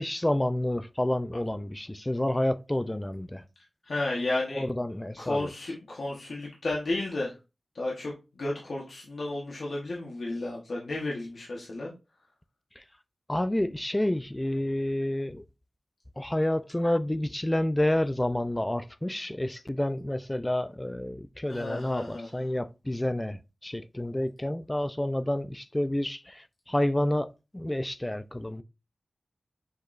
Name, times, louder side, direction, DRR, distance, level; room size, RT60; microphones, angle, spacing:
voice 1, 0.0-3.4 4.6-5.5 12.8-12.9 13.3-15.4 16.2-27.3 27.5-28.6, left 1 dB, 15° left, 0.4 m, -29 dB
voice 2, 3.8-4.6 5.2-7.3 7.7-8.1 8.4-11.9 21.5-22.5, left 2 dB, 70° left, 1.1 m, -32 dB
6.5 x 3.0 x 2.5 m
wide cardioid pair, 65°, 0 cm